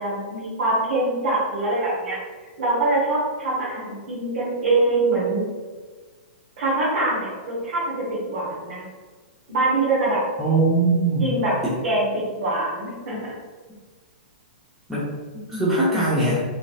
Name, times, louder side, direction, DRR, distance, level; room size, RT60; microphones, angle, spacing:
voice 1, 0.0-2.2 2.6-5.4 6.6-8.8 9.5-10.2 11.2-11.5 11.8-13.3, right 2 dB, 70° right, -9 dB, 1.2 m, -24 dB
voice 2, 10.4-11.2 11.6-11.7 13.1-13.2 14.9-15.1 15.5-16.4, right 2 dB, 5° right, -10 dB, 0.8 m, -21 dB
3.9 x 3.2 x 2.4 m, 1.4 s
hypercardioid pair, 145°, 5 cm